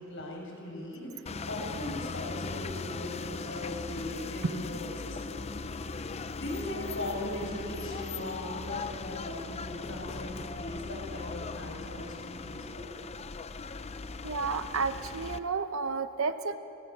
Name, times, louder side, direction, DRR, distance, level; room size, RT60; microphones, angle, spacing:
voice 1, 0.0-5.4 6.3-12.9, left 1 dB, 60° left, -1 dB, 6.1 m, -39 dB
sound 1, 1.3-15.4, left 4 dB, 30° left, 0.5 m, -39 dB
voice 2, 14.2-16.6, right 4 dB, 70° right, 10 dB, 0.8 m, -31 dB
30.0 x 15.0 x 6.7 m, 2.9 s
head